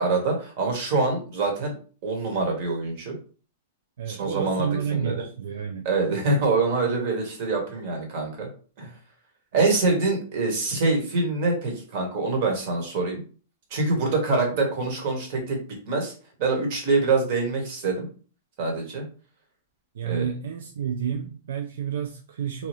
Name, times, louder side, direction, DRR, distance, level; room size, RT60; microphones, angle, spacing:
voice 1, 0.0-1.7 2.0-3.2 4.1-5.1 5.8-8.5 8.8-8.9 9.5-13.2 13.7-16.1 16.4-18.1 18.6-19.0 20.0-20.2, right 3 dB, 50° right, 1.3 m, -25 dB
voice 2, 4.0-5.9 14.5-14.6 19.9-22.7, right 8 dB, 80° right, 0.4 m, -30 dB
2.8 x 2.3 x 3.1 m
hypercardioid pair, 145°, 0 cm